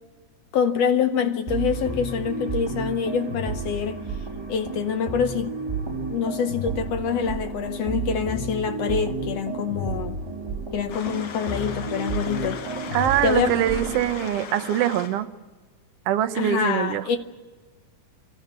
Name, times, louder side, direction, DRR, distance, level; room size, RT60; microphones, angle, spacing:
voice 1, 0.5-4.0 4.5-5.5 6.1-10.2 10.7-12.6 13.2-13.6 16.3-17.2, left 7 dB, 80° left, 1.5 m, -25 dB
sound 1, 1.5-14.3, right 3 dB, 30° right, 5.0 m, -32 dB
sound 2, 10.9-15.2, left 6 dB, 60° left, 1.4 m, -37 dB
voice 2, 12.9-15.3 16.1-17.0, right 11 dB, 75° right, 1.4 m, -23 dB
27.5 x 13.5 x 9.5 m
omnidirectional pair, 3.8 m